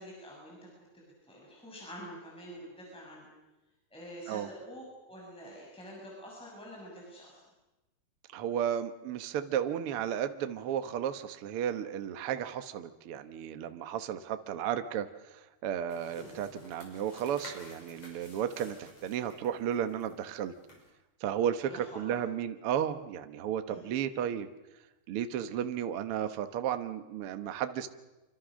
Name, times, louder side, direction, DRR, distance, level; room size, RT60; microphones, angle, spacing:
voice 1, 0.0-3.3 3.9-7.4 21.7-22.2 23.7-23.9, equal, ahead, -3 dB, 6.4 m, -47 dB
voice 2, 8.3-20.5 21.2-24.5 25.1-27.9, right 9 dB, 85° right, 9 dB, 1.2 m, -33 dB
sound 1, 15.9-20.9, left 2 dB, 40° left, 7.5 m, -52 dB
26.5 x 25.5 x 6.4 m, 1.0 s
omnidirectional pair, 4.5 m